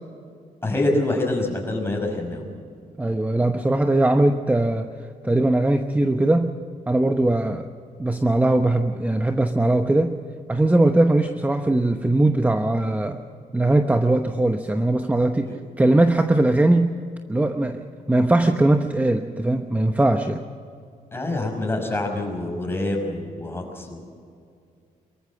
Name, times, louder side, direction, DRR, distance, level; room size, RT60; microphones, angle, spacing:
voice 1, 0.6-2.5 15.4-15.6 21.1-24.0, left 2 dB, 15° left, 1 dB, 5.7 m, -26 dB
voice 2, 3.0-4.9 5.2-6.6 6.9-7.7 8.0-10.2 10.5-13.2 13.5-17.0 17.3-20.4, right 2 dB, 10° right, 6 dB, 1.0 m, -20 dB
24.0 x 14.5 x 7.6 m, 2.3 s
cardioid pair, 105°, 15 cm